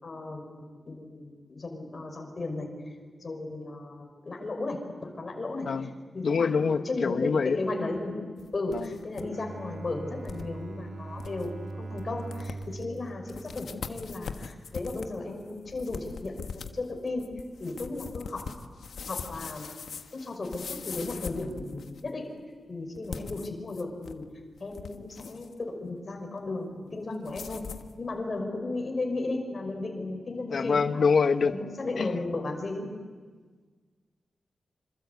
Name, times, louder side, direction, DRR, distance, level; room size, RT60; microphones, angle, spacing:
voice 1, 0.0-2.7 3.2-17.3 17.6-18.5 19.1-19.7 20.1-22.3 22.7-24.2 24.6-27.6 28.0-31.0 31.4-32.9, left 2 dB, 35° left, 2 dB, 5.6 m, -35 dB
voice 2, 6.2-7.6 8.7-8.9 30.5-31.5 32.0-32.2, left 5 dB, 55° left, 9 dB, 1.1 m, -25 dB
sound 1, 8.4-9.2 9.6-9.7 10.2-10.5 10.9-11.0 11.2-11.5 12.0-12.1 12.3-12.8 13.3-22.1 23.0-24.2 24.6-25.5 27.2-27.9, left 6 dB, 85° left, 1.3 m, -41 dB
Bowed string instrument, 9.1-14.4, right 3 dB, 60° right, 2.2 m, -41 dB
26.5 x 26.5 x 8.4 m, 1.5 s
wide cardioid pair, 170°, 0 cm